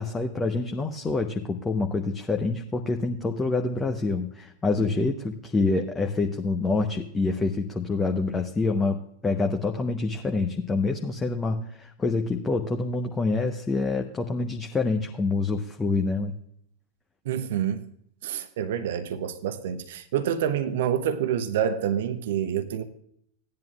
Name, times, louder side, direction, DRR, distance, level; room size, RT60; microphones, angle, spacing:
voice 1, 0.0-16.3, left 3 dB, 15° left, 0.9 m, -26 dB
voice 2, 17.3-17.8 18.2-22.8, right 9 dB, 55° right, 0.8 m, -27 dB
16.5 x 10.5 x 2.4 m
figure-of-eight pair, 90°, 0 cm